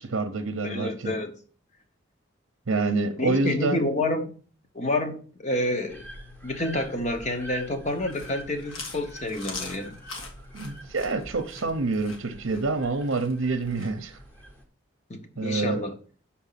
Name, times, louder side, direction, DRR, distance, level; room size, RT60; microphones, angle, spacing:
voice 1, 0.0-1.1 2.7-3.8 10.5-14.2 15.4-15.8, right 3 dB, 75° right, 0.7 m, -27 dB
voice 2, 0.6-1.3 3.2-4.3 4.7-6.0 6.4-10.0 15.1-16.0, left 1 dB, 35° left, 0.9 m, -29 dB
sound 1, 5.9-14.6, equal, 10° left, 0.8 m, -46 dB
Chewing mastication, 7.9-13.9, left 3 dB, 70° left, 1.5 m, -41 dB
6.2 x 4.3 x 5.7 m
head